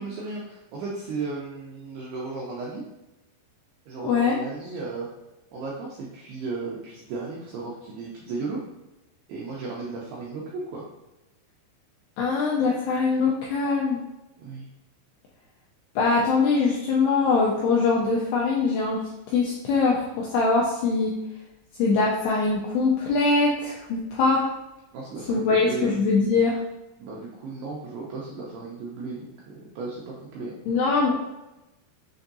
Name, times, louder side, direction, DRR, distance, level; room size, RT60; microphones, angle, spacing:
voice 1, 0.0-2.8 3.9-5.1 5.5-8.6 9.3-10.8 14.4-14.7 24.9-26.0 27.0-30.6, right 3 dB, 90° right, -4 dB, 2.3 m, -35 dB
voice 2, 4.0-4.4 12.2-14.0 16.0-19.0 19.3-21.1 21.8-24.4 25.3-26.6 30.7-31.1, left 4 dB, 85° left, -3 dB, 2.3 m, -22 dB
6.9 x 2.6 x 2.6 m, 0.97 s
omnidirectional pair, 5.5 m